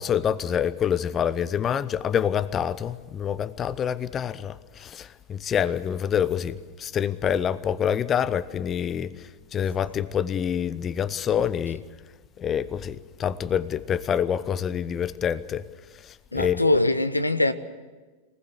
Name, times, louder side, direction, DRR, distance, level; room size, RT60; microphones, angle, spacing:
voice 1, 0.0-9.1 9.5-11.8 12.4-15.6 16.0-16.8, left 8 dB, 25° left, 0.8 m, -26 dB
voice 2, 16.3-17.5, left 2 dB, 85° left, 1.0 m, -22 dB
24.0 x 19.5 x 8.3 m
figure-of-eight pair, 90°, 0 cm